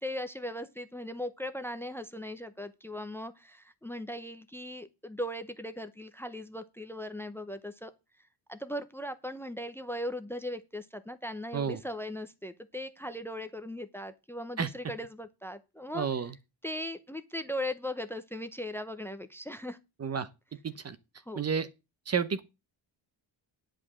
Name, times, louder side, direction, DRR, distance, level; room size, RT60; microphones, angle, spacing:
voice 1, 0.0-7.9 8.5-16.1 16.6-19.8 21.3-21.4, left 1 dB, 5° left, 0.7 m, -38 dB
voice 2, 15.9-16.3 20.0-20.3 20.6-21.0 21.4-21.7 22.1-22.4, right 6 dB, 35° right, 0.7 m, -30 dB
10.5 x 5.0 x 7.3 m
wide cardioid pair, 170°, 45 cm